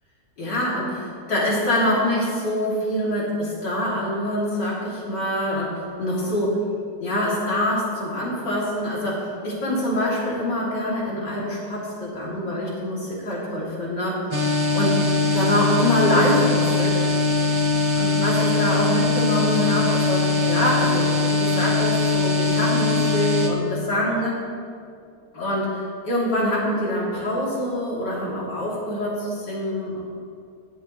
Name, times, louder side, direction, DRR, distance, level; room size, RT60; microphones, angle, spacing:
voice 1, 0.4-6.6 7.0-14.2 14.7-14.9 15.3-17.0 18.0-24.4 25.3-30.0, left 1 dB, 80° left, -6 dB, 3.6 m, -25 dB
sound 1, 14.3-23.5, left 3 dB, 20° right, 1.0 m, -21 dB
18.0 x 11.0 x 3.1 m, 2.3 s
omnidirectional pair, 1.8 m